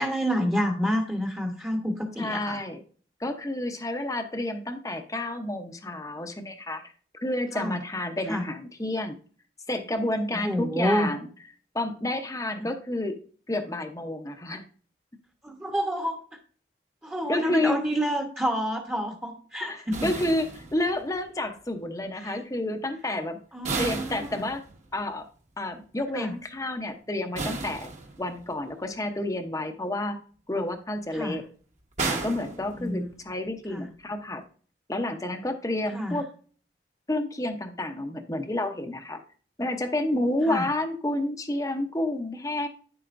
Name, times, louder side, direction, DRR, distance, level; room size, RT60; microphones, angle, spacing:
voice 1, 0.0-2.6 7.5-7.8 8.3-8.5 10.4-11.1 12.6-12.7 15.4-16.2 17.0-20.1 22.2-22.4 23.5-24.4 26.1-26.3 31.1-31.4 32.8-33.1 33.7-33.9 35.9-36.2 40.4-40.7, equal, 10° right, 1 dB, 1.0 m, -28 dB
voice 2, 2.2-2.8 3.2-6.9 7.2-9.2 9.7-11.3 11.7-13.2 13.5-14.6 17.3-17.9 19.6-23.4 23.8-24.6 24.9-25.3 25.6-27.9 28.2-30.2 30.5-31.4 32.0-34.4 34.9-36.3 37.1-39.2 39.6-42.7, left 1 dB, 20° left, 6 dB, 0.8 m, -30 dB
sound 1, 19.9-21.2 23.6-25.0 27.3-28.5 32.0-33.3, right 3 dB, 40° right, 1.3 m, -34 dB
10.0 x 7.7 x 2.6 m, 0.43 s
head